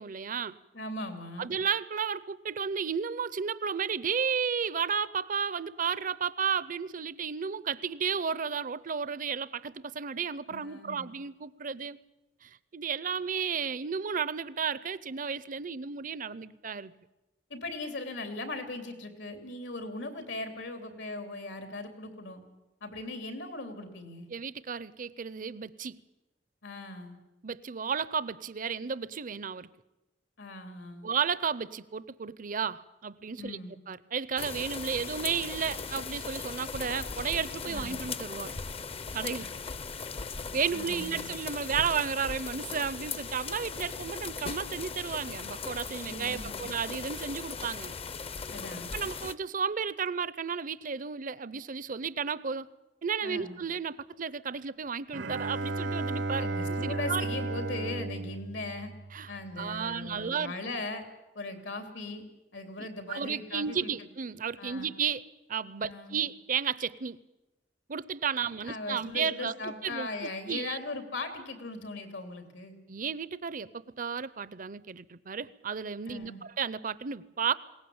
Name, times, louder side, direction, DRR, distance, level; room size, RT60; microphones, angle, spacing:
voice 1, 0.0-0.5 1.4-12.0 12.4-16.9 24.3-26.0 27.4-29.7 31.0-33.6 33.9-38.6 39.1-39.5 40.5-47.9 48.9-52.7 53.0-57.3 59.1-60.5 62.8-65.2 65.5-67.2 67.9-70.8 72.9-73.7 74.0-77.5, right 6 dB, 50° right, 18 dB, 0.7 m, -33 dB
voice 2, 0.7-1.5 10.5-11.1 17.5-22.4 22.8-24.3 26.6-27.2 30.4-31.1 33.4-33.7 37.6-38.0 39.4-39.7 40.7-41.3 46.0-46.7 48.5-48.9 53.2-53.6 56.4-58.9 59.3-61.0 61.3-62.2 62.5-63.9 64.6-64.9 65.8-66.2 68.4-72.7 76.1-76.4, left 2 dB, 85° left, 7 dB, 3.3 m, -39 dB
sound 1, 34.4-49.3, left 5 dB, 35° left, 0.7 m, -38 dB
Bowed string instrument, 55.1-59.5, right 2 dB, 75° right, 1.0 m, -34 dB
21.5 x 18.0 x 8.7 m, 1.0 s
head